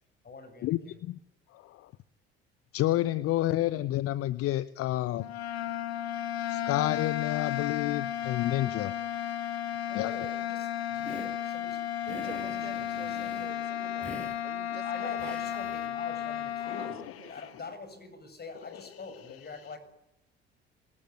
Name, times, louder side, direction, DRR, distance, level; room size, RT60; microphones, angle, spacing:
voice 1, 0.2-1.0 9.8-11.8 12.3-13.3 13.6-13.8 14.8-19.8, left 4 dB, 30° left, 10 dB, 7.0 m, -45 dB
voice 2, 2.7-5.3 6.5-8.9 9.9-10.1 16.6-17.6 18.6-19.5, left 15 dB, 45° left, 19 dB, 0.8 m, -30 dB
sound 1, 5.2-17.0, left 10 dB, 80° left, 1.3 m, -34 dB
Hiss, 11.0-11.4 12.0-13.5 14.0-14.4 15.2-15.9, equal, 5° left, 5.4 m, -45 dB
voice 3, 12.1-15.7 16.8-17.6, right 10 dB, 75° right, 12 dB, 1.7 m, -49 dB
25.0 x 19.5 x 9.4 m, 0.87 s
figure-of-eight pair, 55°, 31 cm